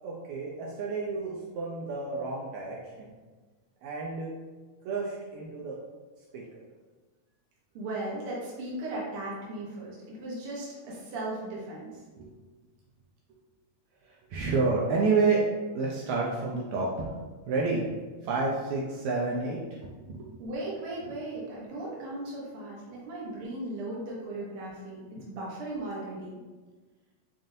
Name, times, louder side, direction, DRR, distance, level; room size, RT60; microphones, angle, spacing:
voice 1, 0.0-3.1 3.8-4.3 4.9-5.8 6.3-6.6 12.2-12.3 14.1-15.4 15.8-17.1 17.5-17.8 18.2-20.3, right 4 dB, 80° right, -3 dB, 1.8 m, -30 dB
voice 2, 7.7-11.9 20.4-26.4, right 2 dB, 60° right, -5 dB, 1.6 m, -37 dB
5.6 x 2.5 x 2.6 m, 1.3 s
omnidirectional pair, 3.4 m